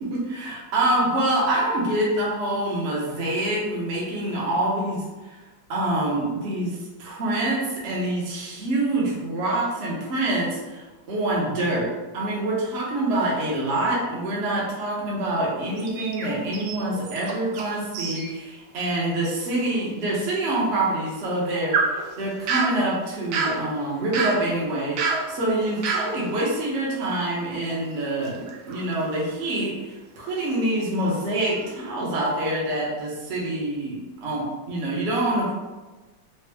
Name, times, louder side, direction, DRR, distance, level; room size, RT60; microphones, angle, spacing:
voice 1, 0.0-5.4 5.7-35.5, right 1 dB, 50° right, -5 dB, 0.9 m, -26 dB
sound 1, 15.8-17.7 17.9-18.3 18.7-18.8 19.5-19.6 21.1-27.8 28.2-29.7 30.3-30.5 31.0-31.8, right 4 dB, 80° right, 1.3 m, -30 dB
4.3 x 2.1 x 3.3 m, 1.2 s
omnidirectional pair, 2.1 m